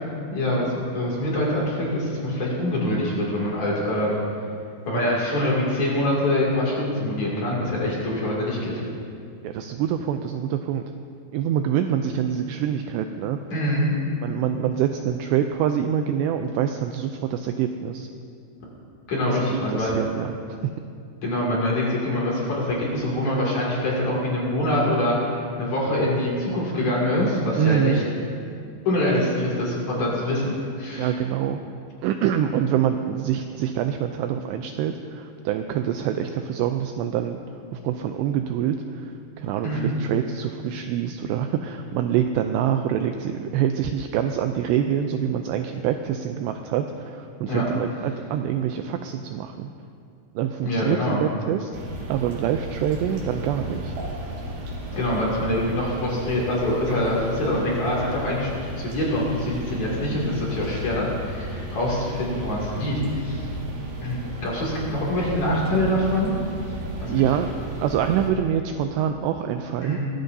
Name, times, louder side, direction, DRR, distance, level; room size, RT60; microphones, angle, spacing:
voice 1, 0.3-4.2 4.9-8.8 13.5-14.0 19.1-20.0 21.2-28.0 28.9-31.1 39.6-39.9 47.5-47.6 50.6-51.2 54.9-63.4 64.0-66.4 67.0-67.3 69.8-70.0, left 1 dB, 45° left, -4 dB, 3.3 m, -24 dB
voice 2, 9.4-10.9 11.3-13.4 14.2-18.1 19.3-20.4 20.6-20.7 27.6-28.0 31.0-31.6 32.0-37.4 37.7-49.7 50.4-51.8 52.1-53.9 66.8-67.5 67.8-70.0, right 9 dB, 90° right, 6 dB, 2.4 m, -25 dB
sound 1, 51.7-68.3, right 1 dB, 65° right, 3.9 m, -34 dB
22.0 x 15.5 x 2.7 m, 2.4 s
omnidirectional pair, 5.5 m